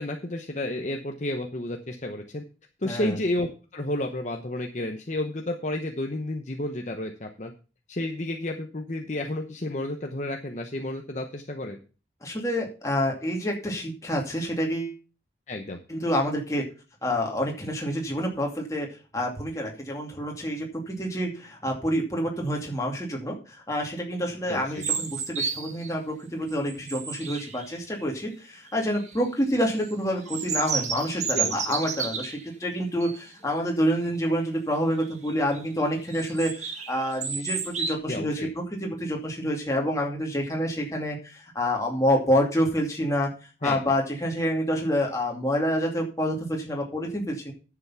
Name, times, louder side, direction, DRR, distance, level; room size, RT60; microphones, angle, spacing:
voice 1, 0.0-2.4 2.8-7.5 7.9-11.8 15.5-15.8 24.5-24.8 31.3-31.5 38.1-38.5 43.6-43.8, left 1 dB, 40° left, 3 dB, 0.9 m, -31 dB
voice 2, 2.8-3.2 12.2-15.0 15.9-16.7 17.0-43.3 43.6-47.5, equal, 20° left, 0 dB, 2.4 m, -28 dB
sound 1, 24.8-25.9 26.4-28.0 28.7-29.2 29.6-32.5 33.0-33.2 33.6-33.7 34.1-34.4 35.0-35.6 36.1-38.0, right 6 dB, 40° right, 1.6 m, -32 dB
10.0 x 7.0 x 5.7 m, 0.34 s
head